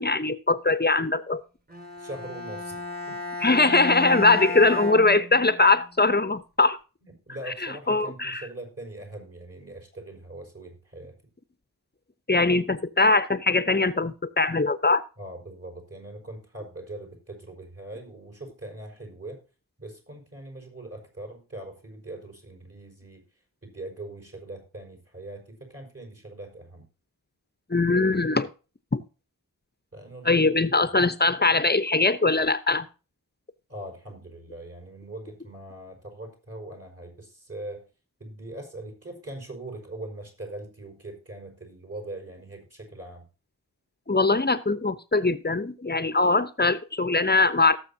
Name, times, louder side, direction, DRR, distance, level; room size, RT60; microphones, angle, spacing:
voice 1, 0.0-1.4 3.4-6.8 7.5-8.5 12.3-15.0 27.7-28.5 28.9-29.0 30.2-32.9 44.1-47.8, left 3 dB, 25° left, 14 dB, 0.9 m, -22 dB
Bowed string instrument, 1.7-5.8, left 2 dB, 25° right, 2.5 m, -34 dB
voice 2, 2.0-2.8 3.1-3.2 7.0-11.2 15.2-19.4 19.8-23.2 23.6-26.9 29.9-30.6 33.7-37.9 38.2-43.3, right 1 dB, 40° right, 3 dB, 5.2 m, -41 dB
18.0 x 7.1 x 2.8 m, 0.33 s
wide cardioid pair, 60°, 36 cm